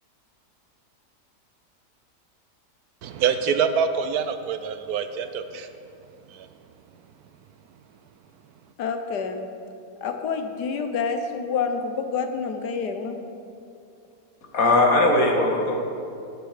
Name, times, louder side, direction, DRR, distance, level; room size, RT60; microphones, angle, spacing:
voice 1, 3.0-5.7 6.3-6.5, right 6 dB, 75° right, 9 dB, 1.0 m, -25 dB
voice 2, 8.8-9.5 10.0-13.2, left 5 dB, 75° left, 6 dB, 1.5 m, -28 dB
voice 3, 14.5-15.8, left 2 dB, 55° left, 0 dB, 2.0 m, -19 dB
18.5 x 6.9 x 4.9 m, 2.6 s
omnidirectional pair, 1.8 m